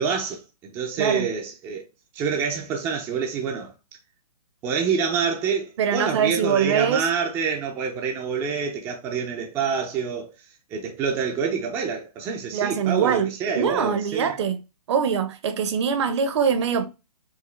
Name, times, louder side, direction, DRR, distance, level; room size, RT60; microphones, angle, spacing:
voice 1, 0.0-1.9 2.1-3.7 4.6-10.3 10.7-14.3, right 6 dB, 15° right, 0.4 m, -27 dB
voice 2, 5.8-7.0 12.5-14.6 14.9-16.8, right 7 dB, 45° right, 0.7 m, -23 dB
4.7 x 2.7 x 3.1 m
hypercardioid pair, 145°, 20 cm